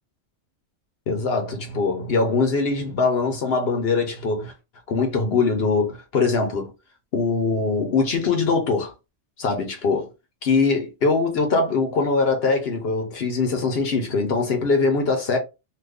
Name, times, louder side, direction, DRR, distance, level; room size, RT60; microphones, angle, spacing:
voice 1, 1.1-4.5 4.9-6.7 7.1-8.9 9.4-10.1 10.4-15.4, left 4 dB, 65° left, 0.9 m, -22 dB
2.5 x 2.5 x 3.5 m
omnidirectional pair, 1.1 m